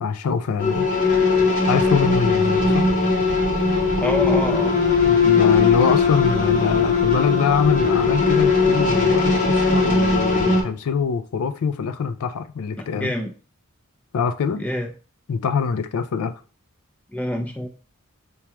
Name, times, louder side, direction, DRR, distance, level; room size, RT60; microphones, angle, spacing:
voice 1, 0.0-0.9 1.7-2.9 5.0-13.1 14.1-14.6 15.3-16.3, left 6 dB, 70° left, 0.4 m, -24 dB
sound 1, 0.6-10.6, left 4 dB, 35° left, 0.8 m, -19 dB
voice 2, 4.0-4.7 12.8-13.3 14.6-14.9 17.1-17.7, left 1 dB, 5° left, 0.5 m, -26 dB
4.7 x 2.3 x 2.9 m
head